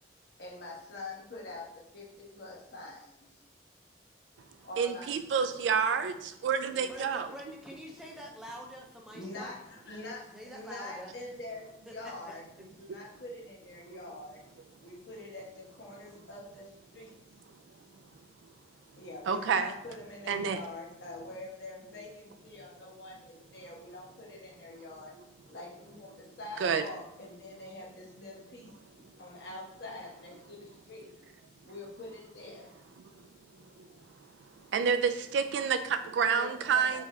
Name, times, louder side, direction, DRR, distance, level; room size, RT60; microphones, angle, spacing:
voice 1, 0.4-3.3 4.6-5.1 6.7-6.8 9.1-14.4 14.8-17.1 19.0-25.2 25.5-28.7 29.2-31.1 31.6-32.7 36.2-37.0, left 2 dB, 65° left, -3 dB, 1.0 m, -45 dB
voice 2, 4.8-7.3 13.9-14.0 19.3-19.7 20.3-20.6 26.6-26.8 33.8-33.9 34.7-37.0, right 6 dB, 85° right, 9 dB, 0.3 m, -28 dB
voice 3, 6.9-9.6 10.3-11.1 11.9-12.4, equal, 5° right, -1 dB, 0.4 m, -46 dB
4.0 x 2.4 x 3.1 m, 0.75 s
head